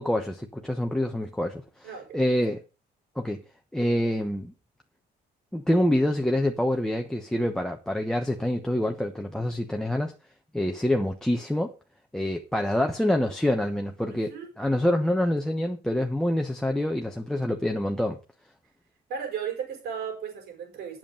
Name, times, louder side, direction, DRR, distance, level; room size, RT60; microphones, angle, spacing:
voice 1, 0.0-2.6 3.2-3.4 3.7-4.5 5.5-10.1 10.5-11.7 12.1-14.3 14.6-18.2, left 1 dB, 5° left, 1.1 m, -26 dB
voice 2, 1.8-2.3 14.1-14.5 19.1-21.0, right 7 dB, 75° right, 5.7 m, -35 dB
8.4 x 7.5 x 6.5 m
cardioid pair, 110°, 17 cm